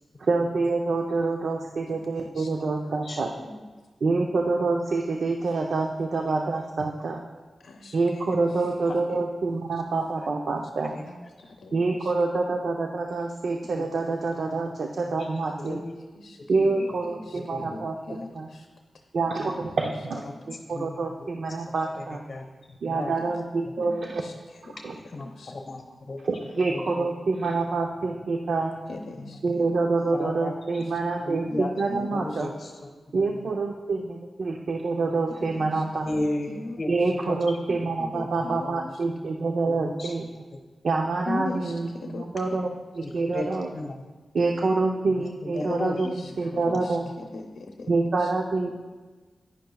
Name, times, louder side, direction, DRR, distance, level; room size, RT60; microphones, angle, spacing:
voice 1, 0.2-3.3 4.0-7.2 7.9-11.0 11.7-15.8 16.5-18.5 19.1-22.2 22.8-24.2 24.8-25.0 26.2-28.8 29.4-32.5 33.1-36.1 36.9-40.3 40.8-43.7 44.3-47.1 47.9-48.7, right 3 dB, 75° right, 2 dB, 0.6 m, -27 dB
voice 2, 7.6-8.0 8.6-8.9 9.1-9.2 10.9-11.7 12.0-12.1 12.4-12.5 15.6-15.7 16.1-16.4 16.8-18.7 19.5-19.6 23.2-23.3 23.8-23.9 24.2-24.3 24.6-24.7 25.2-25.5 28.9-29.7 31.5-32.4 35.4-36.8 37.7-38.9 41.3-42.3 45.6-45.7 46.0-47.9 48.2-48.3, left 2 dB, 85° left, 3 dB, 0.6 m, -39 dB
voice 3, 22.0-22.5 22.9-23.2 25.1-26.2 26.7-27.1 29.2-29.3 30.1-30.8 31.2-31.7 32.0-32.9 33.1-33.2 36.0-36.5 36.8-36.9 37.3-37.6 39.7-40.1 43.0-43.5 43.7-44.1 45.4-46.8 47.0-47.1, left 2 dB, 50° left, 2 dB, 0.9 m, -34 dB
10.5 x 9.9 x 2.3 m, 1.3 s
cardioid pair, 60°, 0 cm